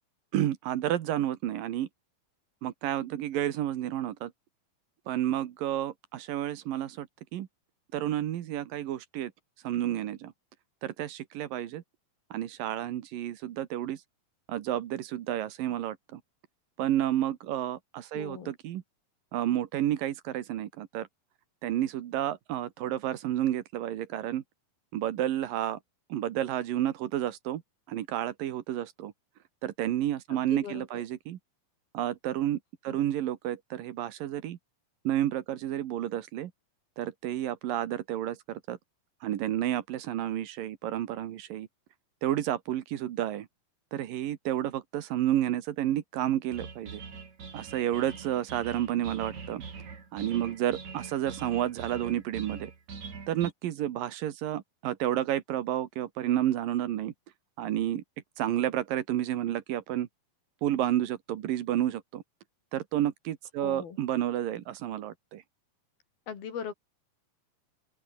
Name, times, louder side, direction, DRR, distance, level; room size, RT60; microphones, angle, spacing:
voice 1, 0.3-1.9 2.6-4.3 5.1-7.5 7.9-9.3 9.6-10.3 10.8-11.8 12.3-14.0 14.5-16.2 16.8-18.8 19.3-21.1 21.6-24.4 24.9-25.8 26.1-27.6 27.9-29.1 29.6-31.4 31.9-32.6 32.8-34.6 35.0-36.5 37.0-38.8 39.2-41.7 42.2-43.5 43.9-47.0 47.5-49.6 50.1-52.7 53.3-57.1 57.6-58.0 58.4-60.1 60.6-62.2 62.7-65.4, right 12 dB, 75° right, 3.0 m, -31 dB
voice 2, 18.1-18.5 30.3-31.0 32.9-33.1 63.6-64.0 66.3-66.7, left 7 dB, 85° left, 5.4 m, -40 dB
sound 1, 46.5-53.5, right 5 dB, 50° right, 5.1 m, -43 dB
open air
omnidirectional pair, 4.2 m